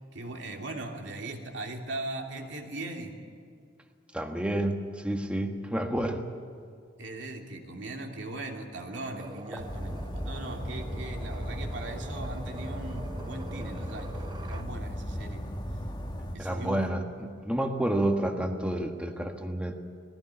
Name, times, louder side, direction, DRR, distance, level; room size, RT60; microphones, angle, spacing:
voice 1, 0.1-3.2 7.0-15.4 16.3-16.8, right 2 dB, 65° right, 2 dB, 2.8 m, -39 dB
voice 2, 4.1-6.2 16.4-19.8, right 1 dB, 5° right, 4 dB, 1.5 m, -29 dB
sound 1, 8.9-14.7, right 1 dB, 25° right, 1.1 m, -46 dB
sound 2, 9.6-16.4, equal, 20° left, 1.7 m, -36 dB
20.5 x 16.0 x 9.9 m, 2.3 s
head